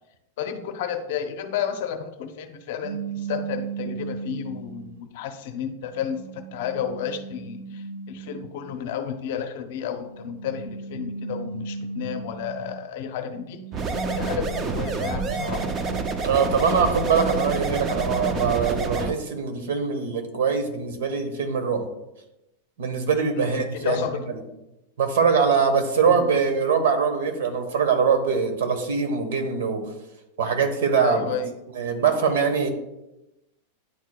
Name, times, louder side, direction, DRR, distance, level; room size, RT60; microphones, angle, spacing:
voice 1, 0.4-13.6 14.1-15.7 23.4-24.3 26.1-26.3 31.0-31.5, left 8 dB, 50° left, 8 dB, 0.6 m, -32 dB
sound 1, 2.8-5.0 5.7-8.8 9.9-12.9 13.3-16.3, right 5 dB, 90° right, 0.3 m, -37 dB
sound 2, 13.7-19.1, right 4 dB, 20° right, 0.4 m, -28 dB
voice 2, 16.2-21.9 22.8-24.0 25.0-29.8 30.4-31.2 31.7-32.7, right 6 dB, 70° right, 7 dB, 1.1 m, -23 dB
10.0 x 4.6 x 2.3 m, 0.92 s
supercardioid pair, 175°, 0 cm